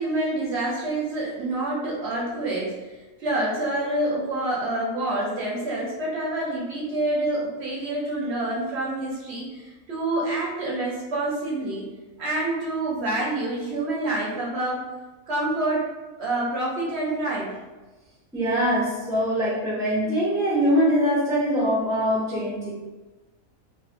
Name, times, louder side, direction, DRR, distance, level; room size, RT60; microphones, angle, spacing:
voice 1, 0.0-2.7 3.2-11.9 12.2-14.8 15.3-15.9 16.2-17.6, right 2 dB, 60° right, -5 dB, 0.7 m, -27 dB
voice 2, 18.3-22.7, equal, 5° right, -7 dB, 0.3 m, -23 dB
2.4 x 2.4 x 2.5 m, 1.2 s
omnidirectional pair, 1.5 m